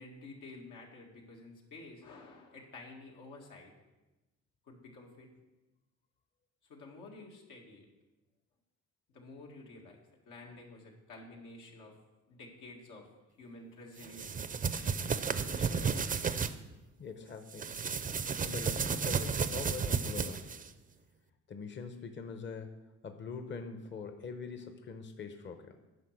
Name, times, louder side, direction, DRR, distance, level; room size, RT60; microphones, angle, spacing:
voice 1, 0.0-3.7 4.7-5.3 6.7-7.9 9.1-10.0 10.3-12.0 12.3-13.1 13.4-15.1 15.4-16.0, left 2 dB, 85° left, -1 dB, 1.9 m, -51 dB
sound 1, 14.0-16.5 17.5-20.7, right 6 dB, 30° right, 0.5 m, -33 dB
voice 2, 17.0-17.8 18.3-20.5 21.5-22.8 23.0-25.8, left 5 dB, 40° left, 7 dB, 0.8 m, -43 dB
9.9 x 5.4 x 6.4 m, 1.1 s
cardioid pair, 90°, 30 cm